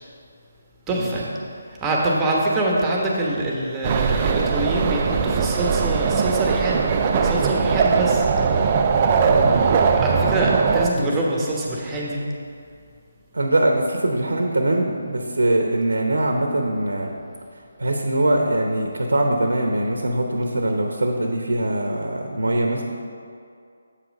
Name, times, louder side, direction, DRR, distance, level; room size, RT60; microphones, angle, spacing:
voice 1, 0.9-1.3 1.8-6.8 7.2-8.3 10.0-12.2, right 1 dB, 15° right, -3 dB, 1.2 m, -24 dB
sound 1, 3.8-10.9, right 5 dB, 30° right, 0.5 m, -20 dB
voice 2, 9.2-9.6 10.9-11.1 13.3-17.1 17.8-22.8, right 1 dB, 75° right, 2 dB, 0.9 m, -22 dB
8.1 x 5.9 x 5.3 m, 2.3 s
figure-of-eight pair, 155°, 0 cm